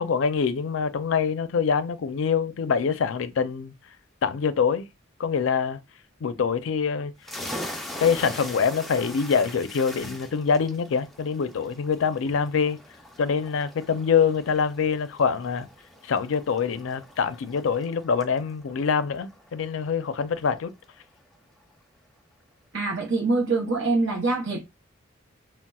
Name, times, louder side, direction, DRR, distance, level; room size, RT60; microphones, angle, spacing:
voice 1, 0.0-3.7 4.2-4.9 5.2-5.8 6.2-7.1 8.0-12.8 13.2-15.7 16.0-20.7, left 6 dB, 85° left, 0.4 m, -25 dB
sound 1, 7.2-20.6, left 1 dB, ahead, 0.4 m, -42 dB
voice 2, 22.7-24.6, right 3 dB, 70° right, 0.7 m, -24 dB
4.0 x 2.0 x 2.3 m
head